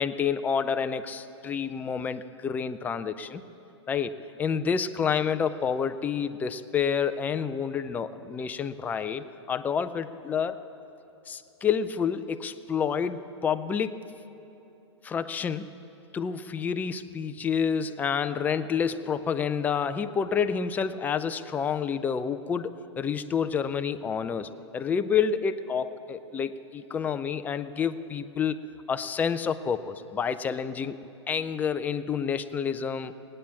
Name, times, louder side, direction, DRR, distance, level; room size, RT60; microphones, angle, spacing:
voice 1, 0.0-3.4 3.9-10.6 11.3-14.0 15.0-15.7 16.1-28.6 28.9-31.0 31.3-33.1, left 7 dB, 10° left, 10 dB, 0.4 m, -29 dB
19.0 x 8.7 x 7.3 m, 2.9 s
hypercardioid pair, 120°, 15 cm